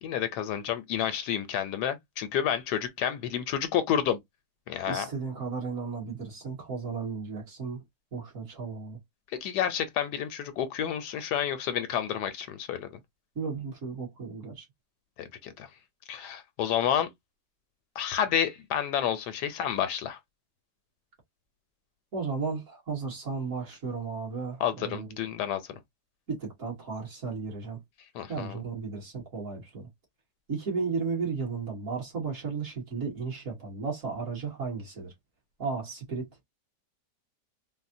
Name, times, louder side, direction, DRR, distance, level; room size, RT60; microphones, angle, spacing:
voice 1, 0.0-4.2 4.7-5.1 9.4-12.9 15.2-15.7 16.1-17.1 18.0-20.2 24.6-25.7 28.1-28.6, left 9 dB, 75° left, 1.1 m, -30 dB
voice 2, 4.9-7.8 8.1-9.0 13.4-14.7 22.1-25.2 26.3-27.8 28.3-29.9 30.5-35.1 35.6-36.3, right 5 dB, 50° right, 1.8 m, -34 dB
4.0 x 2.0 x 2.5 m
omnidirectional pair, 1.9 m